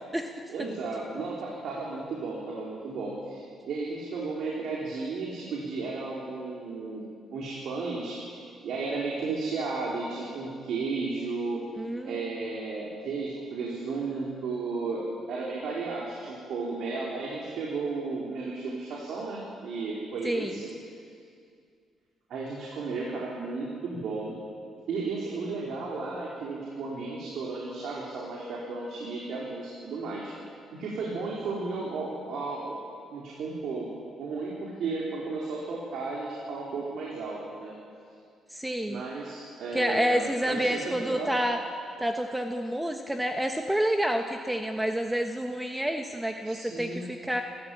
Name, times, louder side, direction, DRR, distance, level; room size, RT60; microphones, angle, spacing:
voice 1, 0.5-7.0 7.3-8.2 8.6-11.6 12.0-20.7 22.3-24.4 24.9-30.3 30.7-32.8 33.1-33.9 34.2-37.7 38.9-41.3 46.5-47.1, right 3 dB, 70° right, -4 dB, 4.4 m, -34 dB
voice 2, 11.8-12.5 20.2-20.5 38.5-39.0 39.7-41.6 42.0-47.4, equal, 10° right, 4 dB, 1.3 m, -29 dB
27.5 x 14.0 x 8.7 m, 2.3 s
cardioid pair, 90°, 0 cm